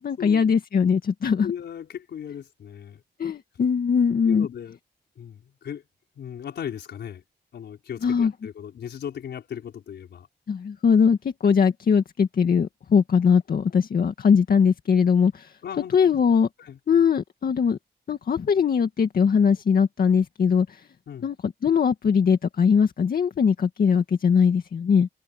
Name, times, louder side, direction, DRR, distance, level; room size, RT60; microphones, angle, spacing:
voice 1, 0.0-1.5 3.2-4.5 8.0-8.3 10.5-15.5 15.9-16.5 16.9-17.8 18.1-20.8 21.2-25.1, left 6 dB, 60° left, 2.0 m, -21 dB
voice 2, 1.4-3.0 4.2-4.8 5.2-5.8 6.2-7.2 7.5-10.3 15.6-16.1 16.6-16.8 21.1-21.3, left 8 dB, 85° left, 4.9 m, -36 dB
wide cardioid pair, 120°, 17 cm